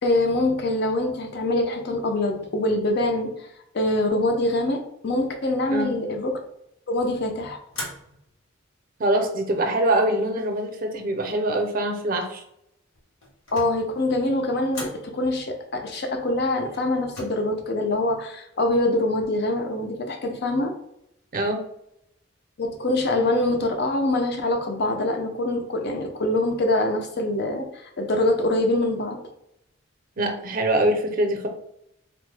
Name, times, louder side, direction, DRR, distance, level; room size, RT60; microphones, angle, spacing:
voice 1, 0.0-3.3 3.7-6.4 6.9-7.6 13.5-20.7 22.6-29.2, left 1 dB, 55° left, 4 dB, 0.5 m, -24 dB
sound 1, 7.7-8.4 9.1-9.7 12.9-13.9 14.7-15.1 16.7-17.2, left 2 dB, 80° left, 1.2 m, -38 dB
voice 2, 9.0-12.4 21.3-21.6 30.2-31.5, right 1 dB, 45° right, 5 dB, 0.5 m, -24 dB
3.0 x 2.1 x 3.2 m, 0.77 s
head